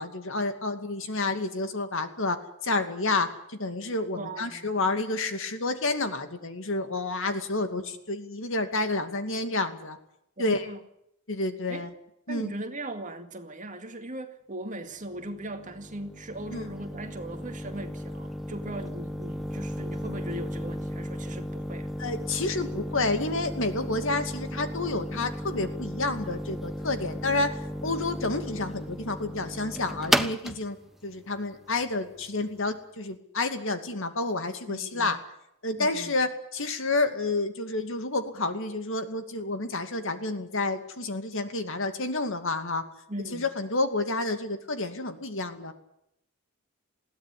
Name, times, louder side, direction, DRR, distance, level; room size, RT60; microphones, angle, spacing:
voice 1, 0.0-10.0 10.4-10.7 11.3-11.9 12.3-12.5 16.5-16.6 22.0-35.2 35.6-42.8 43.3-45.7, left 2 dB, 60° left, 8 dB, 2.4 m, -29 dB
voice 2, 4.1-4.7 7.6-7.8 10.4-10.8 11.7-11.9 12.3-21.9 34.7-35.2 35.8-36.2 43.1-43.4, right 1 dB, 35° right, 6 dB, 2.1 m, -39 dB
sound 1, 15.0-32.7, equal, ahead, 0.9 m, -35 dB
21.0 x 16.0 x 10.0 m, 0.78 s
head